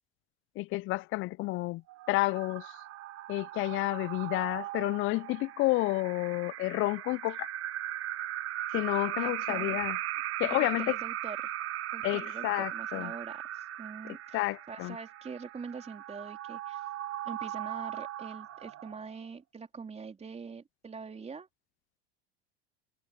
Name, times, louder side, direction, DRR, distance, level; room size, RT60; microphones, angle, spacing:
voice 1, 0.6-1.8 2.1-2.7 3.3-7.5 8.7-10.0 10.4-11.0 12.0-13.1 14.3-15.0, left 20 dB, 45° left, 0.4 m, -30 dB
Vox Ambience, 1.9-19.3, right 14 dB, 50° right, 1.5 m, -38 dB
voice 2, 9.2-9.8 10.4-11.5 11.9-16.8 17.2-21.5, right 5 dB, 20° right, 3.7 m, -44 dB
supercardioid pair, 95°, 30 cm